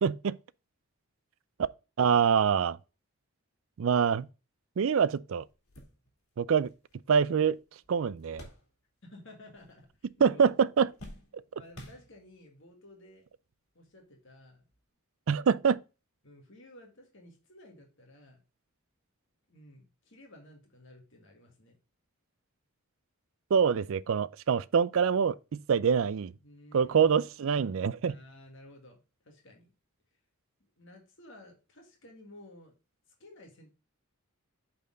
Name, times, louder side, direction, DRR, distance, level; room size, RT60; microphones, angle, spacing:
voice 1, 0.0-0.4 2.0-2.8 3.8-4.3 4.8-5.4 6.4-6.7 7.1-7.6 7.9-8.5 10.2-10.9 15.3-15.8 23.5-26.3 26.7-28.2, right 6 dB, 65° right, 0.4 m, -25 dB
sound 1, 4.9-5.0 5.4-9.2 9.5-10.2 10.5-12.5 13.3-13.4 14.7-14.9, left 1 dB, 75° left, 3.2 m, -52 dB
voice 2, 9.0-9.9 10.2-10.4 11.5-13.3 13.7-14.7 16.2-18.4 19.5-21.8 26.4-27.2 28.0-29.7 30.8-32.7 33.2-33.7, left 1 dB, 55° left, 1.9 m, -54 dB
8.4 x 4.3 x 3.8 m
head